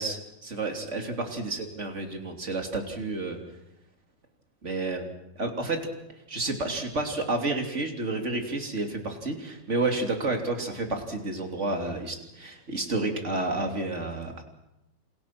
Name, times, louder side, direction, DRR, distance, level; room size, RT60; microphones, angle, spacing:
voice 1, 0.0-3.4 4.6-5.1 5.4-5.8 6.3-14.4, right 2 dB, 20° right, 4 dB, 2.9 m, -30 dB
29.0 x 28.5 x 6.1 m, 0.90 s
omnidirectional pair, 4.3 m